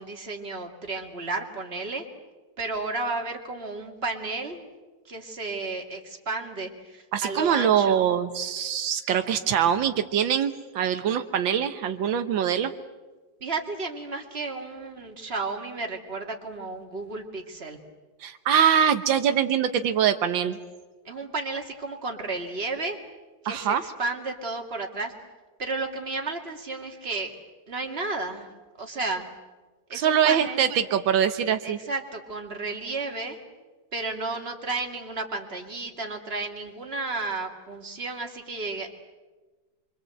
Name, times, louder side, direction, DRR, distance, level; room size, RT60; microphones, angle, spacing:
voice 1, 0.0-2.1 2.6-4.6 5.1-8.0 13.4-17.8 21.0-23.0 23.4-25.1 25.6-27.3 27.7-28.5 28.8-29.3 29.9-30.7 31.6-33.4 33.9-38.9, right 3 dB, 30° right, 2 dB, 2.7 m, -32 dB
voice 2, 7.1-12.7 18.2-20.6 23.5-23.8 29.9-31.8, right 8 dB, 90° right, 8 dB, 1.8 m, -23 dB
26.5 x 24.5 x 7.9 m, 1.2 s
omnidirectional pair, 2.0 m